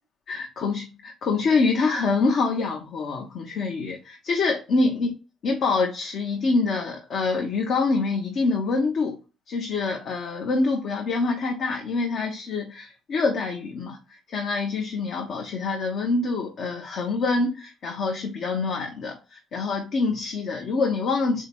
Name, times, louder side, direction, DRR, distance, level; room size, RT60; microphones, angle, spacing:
voice 1, 0.3-5.1 5.4-9.2 9.5-21.5, left 3 dB, 60° left, 2 dB, 0.7 m, -25 dB
3.6 x 2.8 x 4.1 m, 0.31 s
hypercardioid pair, 50°, 0 cm